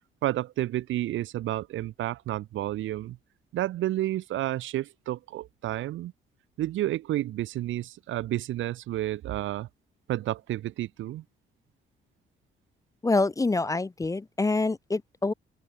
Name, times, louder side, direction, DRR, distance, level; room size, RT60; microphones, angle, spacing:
voice 1, 0.2-3.2 3.5-6.1 6.6-9.7 10.1-11.2, right 14 dB, 80° right, 1.1 m, -30 dB
voice 2, 13.0-15.3, left 3 dB, 15° left, 0.6 m, -26 dB
open air
cardioid pair, 90°, 20 cm